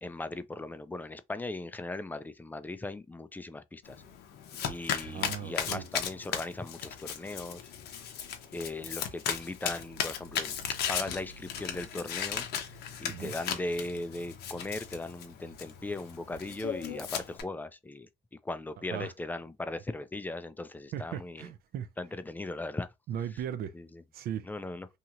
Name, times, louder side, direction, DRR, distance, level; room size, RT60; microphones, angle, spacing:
voice 1, 0.0-4.0 4.6-7.7 8.5-12.5 13.0-18.1 18.4-21.5 22.0-22.9 23.7-24.0 24.4-24.9, left 2 dB, 10° left, 0.3 m, -38 dB
Domestic sounds home sounds, 3.9-17.4, left 8 dB, 70° left, 0.7 m, -37 dB
voice 2, 5.1-5.9 13.1-13.3 18.9-19.1 20.9-21.9 23.1-23.7 24.1-24.4, right 9 dB, 60° right, 0.5 m, -37 dB
2.9 x 2.8 x 2.4 m
cardioid pair, 110°, 17 cm